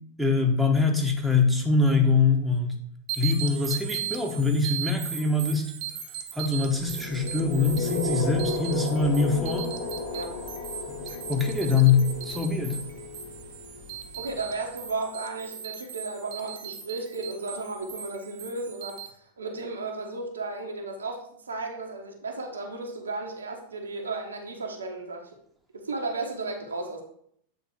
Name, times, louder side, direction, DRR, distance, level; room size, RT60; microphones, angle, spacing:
voice 1, 0.2-2.8 3.2-5.6 6.3-9.7 10.9-11.0 11.3-12.8, left 4 dB, 5° right, 0 dB, 1.2 m, -23 dB
sound 1, 3.1-19.1, right 9 dB, 45° right, 0.8 m, -38 dB
sound 2, 6.6-14.7, left 5 dB, 45° left, 2.2 m, -34 dB
voice 2, 14.1-25.3 25.7-27.0, right 3 dB, 75° right, 2 dB, 1.1 m, -34 dB
7.9 x 3.7 x 4.7 m, 0.67 s
figure-of-eight pair, 90°, 0 cm